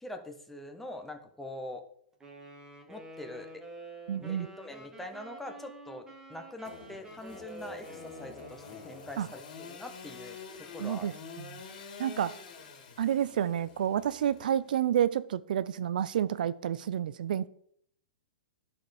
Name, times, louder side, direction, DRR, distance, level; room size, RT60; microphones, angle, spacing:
voice 1, 0.0-1.8 2.9-3.6 4.2-11.1, left 1 dB, 5° left, 0.9 m, -44 dB
Wind instrument woodwind instrument, 2.2-9.2, right 1 dB, 10° right, 1.4 m, -49 dB
voice 2, 4.1-4.5 9.2-9.3 10.8-11.1 11.4-11.6 12.0-12.4 13.0-17.5, right 10 dB, 70° right, 0.4 m, -29 dB
Engine / Sawing, 6.6-14.9, left 5 dB, 60° left, 2.1 m, -48 dB
10.5 x 4.3 x 4.9 m
hypercardioid pair, 140°, 5 cm